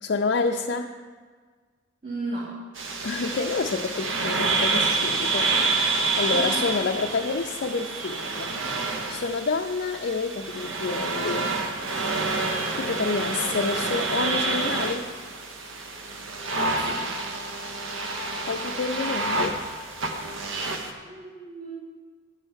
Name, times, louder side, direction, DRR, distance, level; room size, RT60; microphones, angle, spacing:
voice 1, 0.0-0.9 3.0-5.8 6.2-8.6 9.1-11.6 12.8-15.1 18.5-19.6, left 4 dB, 55° left, 2 dB, 0.4 m, -28 dB
voice 2, 2.0-2.5 6.3-6.9 16.8-17.0 21.0-21.7, right 2 dB, 40° right, -8 dB, 2.1 m, -35 dB
sound 1, 2.8-20.9, right 3 dB, 85° right, 0.9 m, -28 dB
10.5 x 4.5 x 8.0 m, 1.5 s
head